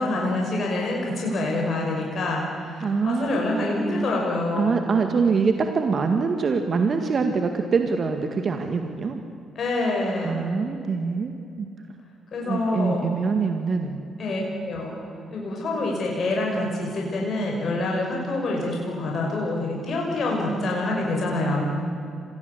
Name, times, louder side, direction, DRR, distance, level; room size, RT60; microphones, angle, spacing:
voice 1, 0.0-4.8 9.6-10.4 12.3-13.1 14.2-15.0 15.3-21.6, left 2 dB, 55° left, -1 dB, 6.0 m, -26 dB
voice 2, 2.8-3.8 4.6-9.2 10.2-11.7 12.4-14.0, right 4 dB, 50° right, 6 dB, 2.0 m, -24 dB
26.5 x 19.5 x 8.2 m, 2.5 s
hypercardioid pair, 50°, 0 cm